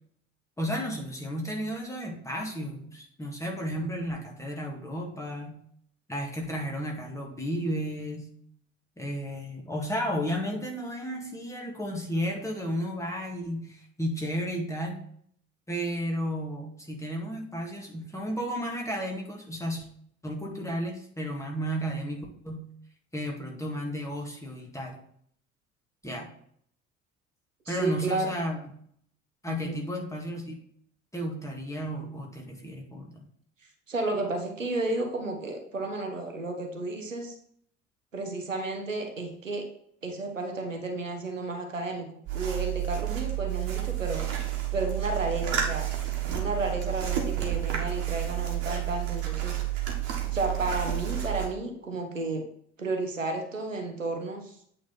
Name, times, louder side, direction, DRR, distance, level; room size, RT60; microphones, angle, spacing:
voice 1, 0.6-5.6 6.1-8.3 9.0-15.0 15.7-19.9 20.2-22.7 23.1-25.0 26.0-26.3 27.7-28.6 29.4-30.5 31.1-33.2, equal, 10° left, 0 dB, 1.9 m, -33 dB
voice 2, 27.7-28.3 29.5-29.8 33.9-37.4 38.1-39.6 40.0-42.1 42.3-44.2 44.7-45.9 46.3-49.6 50.3-52.4 52.8-54.6, right 2 dB, 85° right, 3 dB, 0.9 m, -32 dB
sound 1, 42.3-51.5, right 12 dB, 65° right, 1.6 m, -30 dB
8.6 x 3.8 x 4.4 m, 0.65 s
figure-of-eight pair, 55°, 37 cm